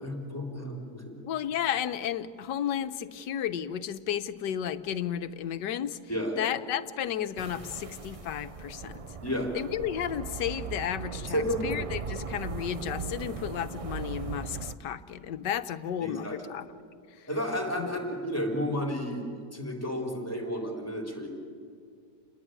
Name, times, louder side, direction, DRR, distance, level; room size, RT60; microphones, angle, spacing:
voice 1, 0.0-1.1 6.1-6.5 9.2-9.5 11.3-11.7 16.0-16.5 17.3-19.2 19.5-21.3, equal, 10° left, 1 dB, 4.2 m, -32 dB
voice 2, 1.2-6.0 6.4-9.0 9.5-16.6 17.8-17.9, left 9 dB, 80° left, 11 dB, 1.5 m, -33 dB
sound 1, 7.4-14.7, right 5 dB, 70° right, 0.3 m, -38 dB
29.5 x 20.0 x 9.6 m, 2.2 s
omnidirectional pair, 1.8 m